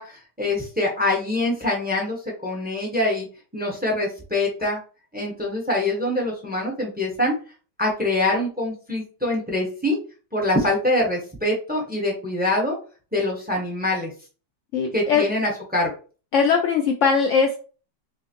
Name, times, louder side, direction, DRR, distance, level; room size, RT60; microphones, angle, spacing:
voice 1, 0.0-2.2 2.4-3.3 3.5-4.8 5.1-7.3 7.8-10.0 10.3-12.8 13.1-14.1 14.9-15.9, left 1 dB, 5° right, -1 dB, 0.8 m, -24 dB
voice 2, 14.7-15.2 16.3-17.6, left 6 dB, 85° left, 3 dB, 0.6 m, -20 dB
5.6 x 2.1 x 2.9 m, 0.37 s
omnidirectional pair, 1.8 m